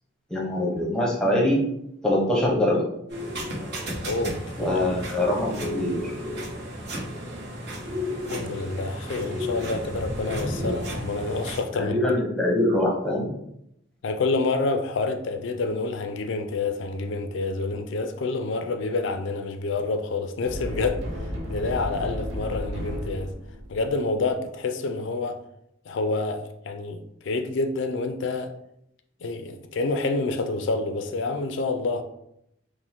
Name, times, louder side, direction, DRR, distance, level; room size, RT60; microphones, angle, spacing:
voice 1, 0.3-1.6 2.0-2.8 4.6-6.0 10.4-10.8 11.8-13.3, left 1 dB, 5° left, 0.8 m, -24 dB
sound 1, 3.1-11.6, equal, 55° right, 1.1 m, -33 dB
voice 2, 4.0-4.8 8.3-12.0 14.0-23.3 23.7-25.4 25.9-28.5 29.2-32.0, left 3 dB, 65° left, 0.4 m, -28 dB
sound 2, 20.4-24.1, equal, 80° right, 0.8 m, -33 dB
4.9 x 2.1 x 3.5 m
head